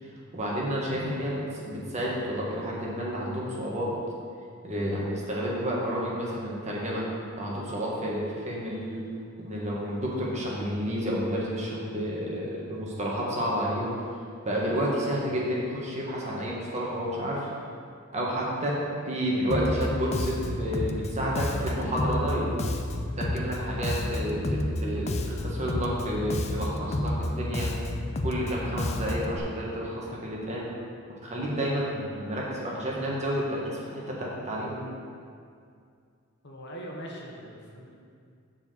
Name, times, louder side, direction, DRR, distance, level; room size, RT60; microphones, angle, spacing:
voice 1, 0.0-3.9 4.6-7.0 7.4-9.0 9.4-14.0 14.4-17.5 18.1-18.8 19.0-22.6 23.2-27.7 28.2-30.7 31.2-34.9, equal, 35° right, -4 dB, 1.5 m, -30 dB
Bass guitar, 19.5-29.4, left 1 dB, 30° left, 0.4 m, -30 dB
voice 2, 36.4-37.9, equal, 55° left, -2 dB, 1.2 m, -42 dB
7.0 x 4.3 x 6.7 m, 2.3 s
head